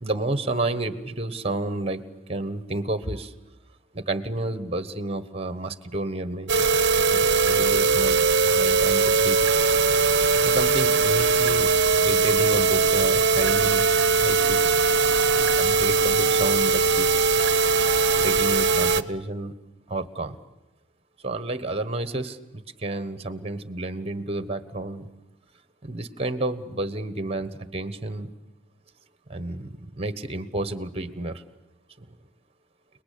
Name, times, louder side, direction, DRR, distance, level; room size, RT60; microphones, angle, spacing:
voice 1, 0.0-2.0 2.3-3.3 3.9-6.7 7.1-8.2 8.5-9.4 10.4-11.7 12.0-13.9 14.2-14.6 15.4-17.6 18.1-19.5 19.9-20.4 21.2-25.1 25.8-28.3 29.3-31.4 32.0-32.1, right 2 dB, 30° right, 12 dB, 1.4 m, -31 dB
sound 1, 6.5-19.0, right 4 dB, 60° right, 0.9 m, -20 dB
30.0 x 20.5 x 8.6 m, 1.0 s
head